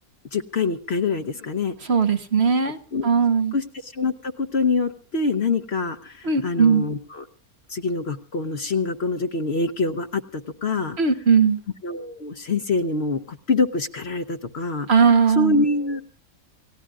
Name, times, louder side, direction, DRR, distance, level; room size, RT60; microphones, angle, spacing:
voice 1, 0.3-1.7 2.9-3.1 3.5-3.6 3.9-7.0 7.7-10.2 10.6-11.0 11.8-14.9 15.4-16.0, left 3 dB, 50° left, 9 dB, 1.0 m, -25 dB
voice 2, 1.8-2.8 3.0-3.5 6.2-6.9 11.0-11.6 14.9-15.6, right 5 dB, 50° right, 8 dB, 1.1 m, -18 dB
29.0 x 17.0 x 2.4 m, 0.39 s
omnidirectional pair, 1.5 m